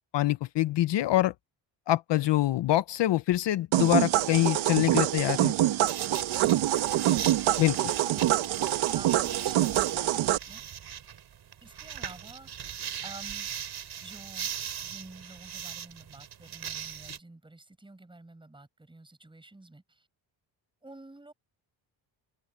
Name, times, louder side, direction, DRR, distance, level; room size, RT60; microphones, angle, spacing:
voice 1, 0.1-1.3 1.9-5.5 7.6-7.9, left 14 dB, 65° left, 0.8 m, -25 dB
sound 1, 3.7-10.4, right 13 dB, 90° right, 1.4 m, -25 dB
sound 2, 5.9-17.2, right 9 dB, 55° right, 7.8 m, -40 dB
voice 2, 8.0-8.3 8.9-10.6 11.6-12.7 13.0-13.5 14.0-14.5 14.8-20.1 20.8-21.3, right 2 dB, 10° right, 7.7 m, -50 dB
cardioid pair, 145°, 46 cm